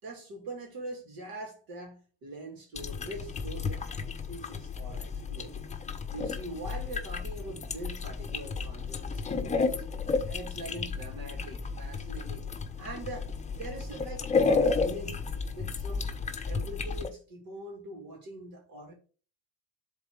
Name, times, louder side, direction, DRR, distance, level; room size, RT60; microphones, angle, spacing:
voice 1, 0.0-5.5 6.1-9.8 10.2-12.4 12.8-15.2 15.5-16.1 16.4-18.9, right 1 dB, 65° right, 2.9 m, -43 dB
sound 1, 2.8-17.1, left 4 dB, 20° left, 0.8 m, -32 dB
7.2 x 4.0 x 4.9 m
supercardioid pair, 110°, 36 cm